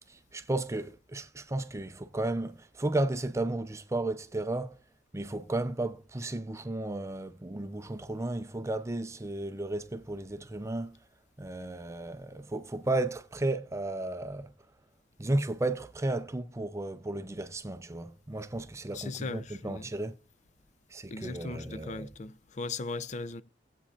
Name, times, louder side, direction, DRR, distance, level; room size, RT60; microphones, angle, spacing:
voice 1, 0.1-4.8 5.1-11.0 11.4-14.5 15.2-20.1 20.9-22.1, right 2 dB, 15° right, 0.5 m, -33 dB
voice 2, 18.9-19.9 21.1-23.4, left 3 dB, 45° left, 0.5 m, -38 dB
18.0 x 8.4 x 2.4 m
head